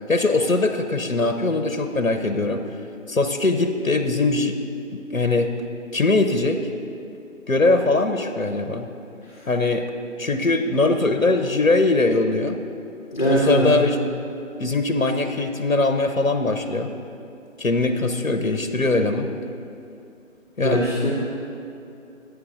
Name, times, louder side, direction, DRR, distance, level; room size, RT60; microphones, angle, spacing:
voice 1, 0.1-2.6 3.1-4.6 4.9-5.5 5.9-6.6 7.5-8.9 9.5-9.9 10.2-12.6 13.3-14.0 14.6-16.9 17.6-19.3 20.6-20.8, left 2 dB, 85° left, 7 dB, 1.0 m, -21 dB
voice 2, 13.1-13.7 20.6-21.1, equal, 35° left, -6 dB, 2.0 m, -21 dB
24.0 x 9.5 x 2.6 m, 2.6 s
figure-of-eight pair, 160°, 40 cm